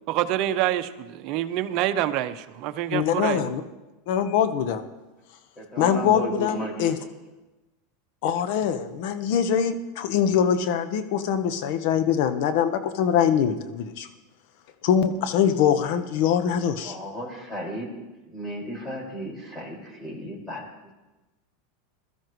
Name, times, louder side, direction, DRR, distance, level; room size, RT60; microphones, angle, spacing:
voice 1, 0.1-3.5, right 13 dB, 55° right, 10 dB, 0.8 m, -26 dB
voice 2, 2.9-3.6 4.1-4.8 5.8-7.0 8.2-14.1 14.8-17.0, left 8 dB, 65° left, 9 dB, 1.2 m, -23 dB
voice 3, 5.6-7.1 16.8-17.9 18.2-20.6, equal, 15° left, -2 dB, 5.6 m, -34 dB
21.5 x 13.0 x 3.2 m, 1.1 s
hypercardioid pair, 110°, 0 cm